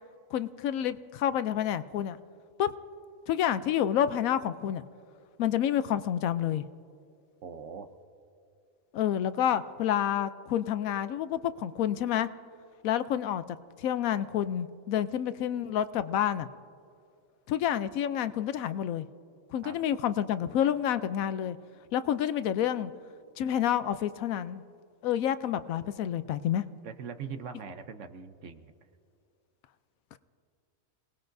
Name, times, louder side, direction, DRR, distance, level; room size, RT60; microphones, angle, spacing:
voice 1, 0.3-2.2 2.6-2.7 3.3-4.8 5.4-6.6 8.9-12.3 12.8-13.4 13.8-16.5 17.5-19.1 19.5-21.6 21.9-22.9 23.4-24.6 25.0-26.6, left 10 dB, 80° left, 13 dB, 1.0 m, -29 dB
voice 2, 7.4-7.9 19.6-19.8 26.8-28.7, right 6 dB, 65° right, 9 dB, 1.1 m, -41 dB
28.0 x 19.0 x 2.6 m, 2.5 s
omnidirectional pair, 1.4 m